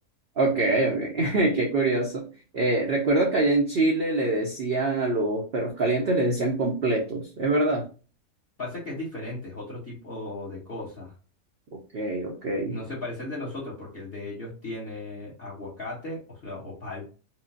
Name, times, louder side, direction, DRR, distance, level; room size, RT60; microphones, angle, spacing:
voice 1, 0.4-2.2 2.5-7.9 11.9-12.8, right 2 dB, 60° right, 0 dB, 0.6 m, -24 dB
voice 2, 8.6-11.1 12.7-17.1, left 2 dB, 40° left, -4 dB, 1.2 m, -36 dB
4.5 x 2.0 x 2.6 m, 0.35 s
omnidirectional pair, 1.7 m